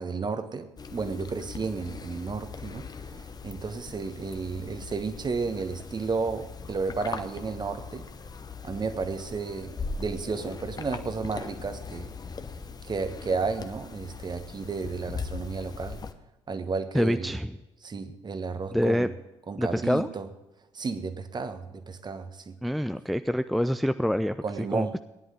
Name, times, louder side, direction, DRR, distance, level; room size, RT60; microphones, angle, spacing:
voice 1, 0.0-2.9 3.4-8.0 8.6-12.1 12.8-16.0 16.5-17.3 17.8-19.1 19.5-20.3 20.7-22.6 24.4-24.9, right 4 dB, 30° right, 10 dB, 1.3 m, -32 dB
sound 1, 0.8-16.1, left 4 dB, 25° left, 1.0 m, -40 dB
voice 2, 16.9-17.5 18.7-19.1 19.6-20.1 22.6-24.4 24.7-25.0, equal, ahead, 11 dB, 0.4 m, -26 dB
16.5 x 11.0 x 3.8 m, 1.0 s
figure-of-eight pair, 45°, 15 cm